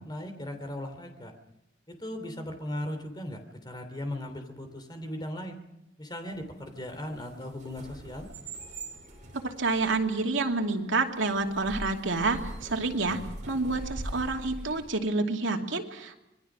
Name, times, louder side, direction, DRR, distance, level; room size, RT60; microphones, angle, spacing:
voice 1, 0.0-1.3 1.9-5.6 6.0-8.3, left 1 dB, 20° left, 6 dB, 3.1 m, -38 dB
sound 1, 6.3-14.9, right 1 dB, 40° right, 5.7 m, -43 dB
voice 2, 9.4-13.2 13.5-16.2, right 3 dB, 85° right, 3 dB, 2.6 m, -28 dB
25.5 x 21.0 x 6.2 m, 0.87 s
head